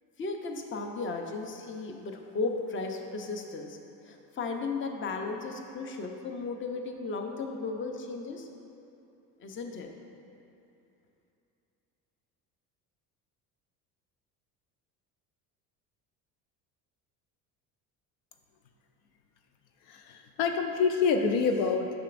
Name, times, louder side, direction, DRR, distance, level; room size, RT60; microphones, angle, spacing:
voice 1, 0.2-3.8 4.0-8.5 9.4-9.9, left 3 dB, 25° left, 3 dB, 0.7 m, -35 dB
voice 2, 19.9-21.9, left 5 dB, 65° left, 5 dB, 0.6 m, -27 dB
9.3 x 6.0 x 2.5 m, 2.7 s
hypercardioid pair, 70°, 49 cm